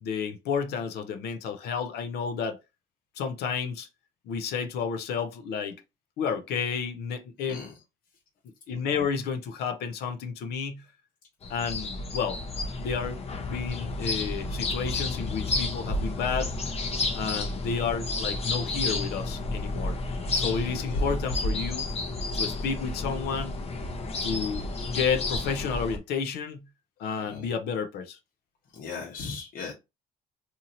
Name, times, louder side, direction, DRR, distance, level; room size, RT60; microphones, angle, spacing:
voice 1, 0.0-2.6 3.2-3.9 4.3-5.8 6.2-7.6 8.7-10.8 11.5-12.4 12.8-16.5 17.1-20.0 20.3-21.9 22.3-23.5 24.2-26.7 27.0-28.2, left 6 dB, 75° left, 0.6 m, -31 dB
sound 1, 11.4-26.0, left 2 dB, 35° left, 0.7 m, -31 dB
voice 2, 20.7-21.1 27.2-27.5 28.7-29.7, left 5 dB, 60° left, 1.0 m, -38 dB
2.8 x 2.7 x 2.6 m
cardioid pair, 110°, 17 cm